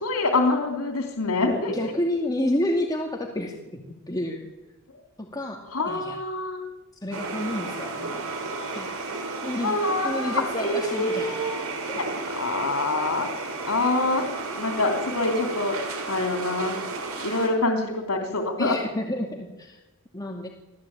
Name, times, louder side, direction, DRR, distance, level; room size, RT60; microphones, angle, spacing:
voice 1, 0.0-1.7 5.7-6.7 9.6-11.6 12.4-13.3 13.6-14.3 14.5-15.8 16.1-16.8 17.2-18.8, left 2 dB, 90° left, 3 dB, 3.2 m, -25 dB
voice 2, 1.5-3.8 4.1-4.5 5.2-6.2 7.0-8.5 8.7-8.9 9.4-9.8 10.0-11.4 11.9-12.0 18.6-19.8 20.1-20.5, left 1 dB, 20° left, 1 dB, 2.4 m, -30 dB
sound 1, 7.1-17.5, right 3 dB, 90° right, 6.3 m, -33 dB
26.5 x 17.0 x 8.9 m, 1.0 s
head